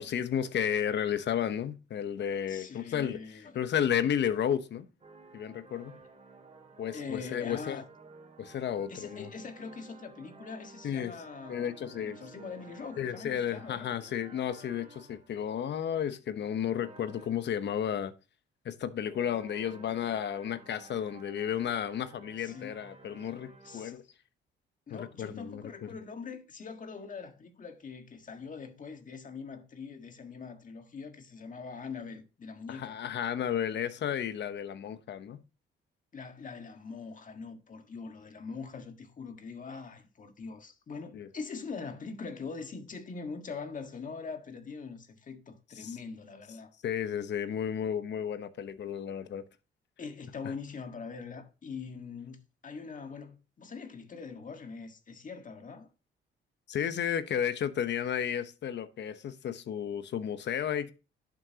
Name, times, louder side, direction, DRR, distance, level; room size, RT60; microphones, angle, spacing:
voice 1, 0.0-4.9 5.3-6.0 6.8-7.8 8.4-9.3 10.8-11.2 11.5-12.2 13.0-18.1 18.6-24.0 24.9-25.9 32.7-35.4 41.1-41.3 45.8-45.9 46.8-49.4 50.4-50.5 56.7-60.9, left 9 dB, 60° left, 1.0 m, -33 dB
voice 2, 2.5-3.6 6.9-7.9 8.9-13.9 22.4-22.8 23.6-24.0 24.9-33.0 36.1-46.7 50.0-55.9, left 5 dB, 40° left, 1.7 m, -43 dB
sound 1, 5.0-15.4 16.7-17.7 19.0-23.9, right 3 dB, 30° right, 2.5 m, -53 dB
10.5 x 7.9 x 2.9 m
cardioid pair, 90°, 20 cm